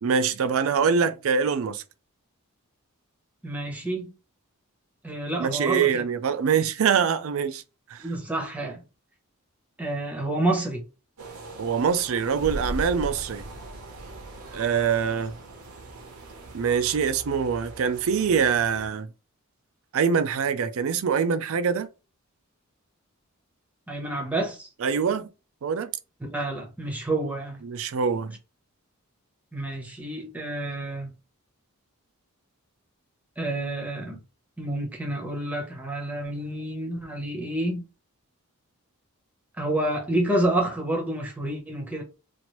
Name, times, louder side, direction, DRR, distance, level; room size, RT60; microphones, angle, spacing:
voice 1, 0.0-1.8 5.4-7.6 7.9-8.1 11.6-13.4 14.5-15.3 16.5-19.1 19.9-21.9 24.8-25.3 25.6-25.9 27.6-28.4, right 6 dB, 65° right, 0.4 m, -24 dB
voice 2, 3.4-4.1 5.0-6.0 8.0-8.8 9.8-10.9 23.9-24.7 26.2-27.6 29.5-31.1 33.4-34.2 34.6-37.8 39.6-42.0, right 1 dB, 5° right, 0.8 m, -29 dB
sound 1, 11.2-18.9, right 3 dB, 90° right, 0.9 m, -44 dB
sound 2, 12.3-16.6, equal, 80° left, 0.7 m, -38 dB
3.0 x 2.5 x 3.0 m
head